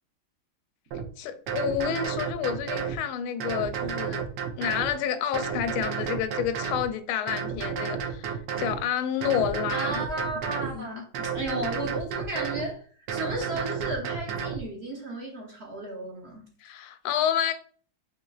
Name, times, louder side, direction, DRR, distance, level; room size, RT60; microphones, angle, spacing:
sound 1, 0.9-1.1 1.5-3.0 3.4-4.9 5.3-6.9 7.3-8.8 9.2-10.7 11.1-12.7 13.1-14.6, right 7 dB, 70° right, 1.2 m, -31 dB
voice 1, 1.2-4.2 4.6-10.0 10.7-10.9 16.6-17.5, left 9 dB, 85° left, 1.4 m, -29 dB
voice 2, 9.7-16.4, right 1 dB, 55° right, 0.7 m, -34 dB
4.3 x 3.7 x 2.3 m
omnidirectional pair, 2.3 m